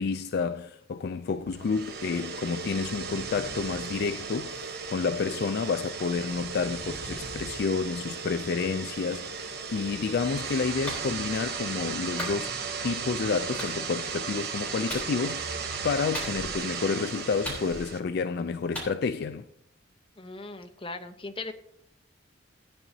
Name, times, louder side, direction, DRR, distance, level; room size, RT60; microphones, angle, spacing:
voice 1, 0.0-12.6 12.8-15.6 15.8-19.5, left 5 dB, 55° left, 0.3 m, -30 dB
sound 1, 1.4-18.0, right 5 dB, 55° right, 1.1 m, -36 dB
Clapping, 10.9-11.0 12.2-12.4 13.6-13.7 14.9-15.1 16.1-16.6 17.4-18.0 18.8-18.9, equal, 10° left, 3.6 m, -36 dB
voice 2, 20.2-21.5, left 3 dB, 30° left, 0.8 m, -38 dB
16.5 x 9.4 x 2.7 m
head